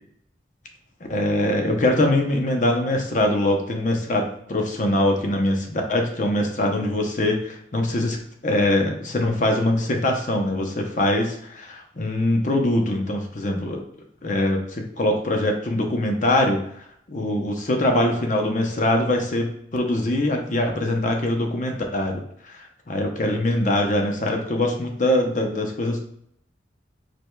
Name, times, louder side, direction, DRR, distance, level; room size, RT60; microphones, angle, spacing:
voice 1, 1.1-8.2 8.4-13.8 14.2-16.6 17.1-26.0, left 1 dB, 45° left, 3 dB, 0.7 m, -23 dB
5.0 x 4.5 x 2.2 m, 0.69 s
head